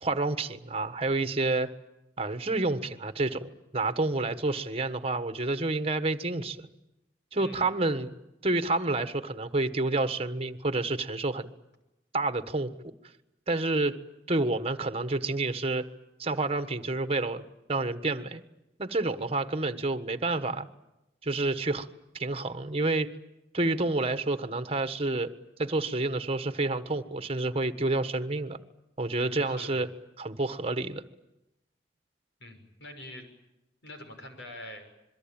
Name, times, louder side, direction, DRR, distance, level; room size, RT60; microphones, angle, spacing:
voice 1, 0.0-1.7 2.2-6.7 7.3-8.1 8.4-11.5 12.1-12.7 13.5-14.0 14.3-15.9 16.2-18.4 18.8-20.7 21.2-21.9 22.1-23.1 23.5-25.3 25.6-28.6 29.0-29.9 30.2-31.0, right 2 dB, 35° right, 10 dB, 1.4 m, -29 dB
voice 2, 7.4-7.7 29.1-29.8 32.4-33.3 33.8-34.9, left 1 dB, 80° left, 5 dB, 6.3 m, -45 dB
26.0 x 23.0 x 8.9 m, 0.93 s
head